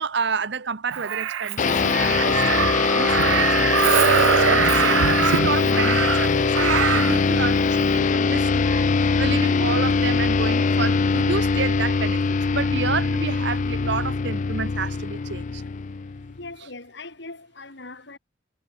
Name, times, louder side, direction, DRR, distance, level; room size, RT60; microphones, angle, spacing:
voice 1, 0.0-8.7 9.0-15.6, right 5 dB, 65° right, 1.0 m, -30 dB
Crow, 0.9-7.2 8.6-8.8, right 9 dB, 85° right, 0.4 m, -23 dB
sound 1, 1.6-16.4, left 4 dB, 40° left, 0.4 m, -22 dB
voice 2, 16.3-18.2, left 3 dB, 65° left, 4.0 m, -40 dB
head